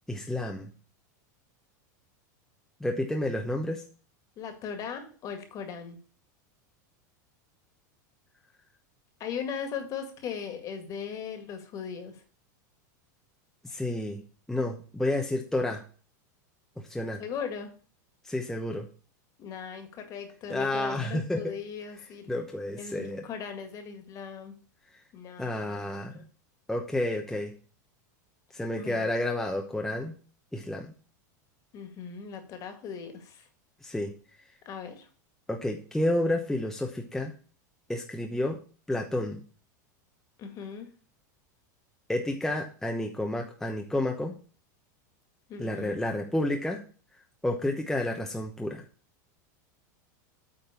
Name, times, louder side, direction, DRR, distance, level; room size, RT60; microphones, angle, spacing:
voice 1, 0.1-0.7 2.8-3.8 13.7-14.2 14.5-15.8 16.8-17.2 18.2-18.9 20.5-21.5 22.3-23.3 25.4-26.2 26.7-27.5 28.5-30.2 30.5-30.9 33.8-34.1 35.5-37.3 37.9-38.6 38.9-39.4 42.1-44.3 45.6-46.8 47.4-48.8, left 1 dB, 5° left, 2 dB, 0.8 m, -30 dB
voice 2, 4.4-6.0 9.2-12.2 17.2-17.7 19.4-22.5 22.8-24.5 25.1-26.2 28.8-29.1 31.7-33.5 34.7-35.1 40.4-40.9 45.5-46.0, left 7 dB, 35° left, 6 dB, 1.9 m, -38 dB
8.7 x 3.9 x 6.8 m, 0.40 s
supercardioid pair, 140°, 10 cm